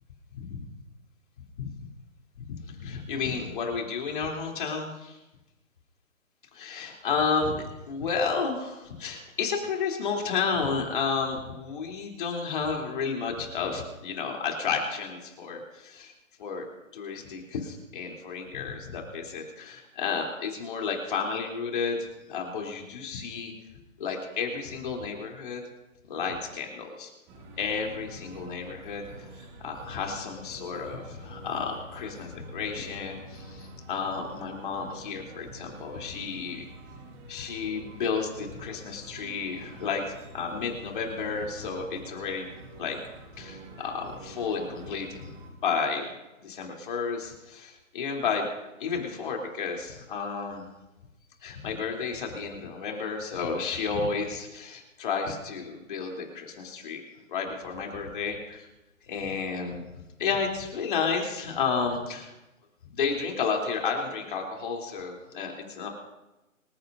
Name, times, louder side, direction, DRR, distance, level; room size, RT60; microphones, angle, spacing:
voice 1, 0.3-0.7 1.6-1.7 2.4-5.2 6.5-16.1 16.4-16.6 16.9-23.5 24.0-25.6 26.1-27.1 27.6-29.0 29.6-36.7 37.3-42.5 42.8-43.0 43.4-45.3 45.6-46.1 46.4-48.5 48.8-50.7 51.4-57.0 57.3-58.7 59.1-59.9 60.2-62.3 62.9-65.9, left 5 dB, 35° left, 0 dB, 3.4 m, -32 dB
sound 1, 27.3-45.5, right 1 dB, 15° right, 1.6 m, -46 dB
26.0 x 15.5 x 2.7 m, 1.0 s
hypercardioid pair, 155°, 41 cm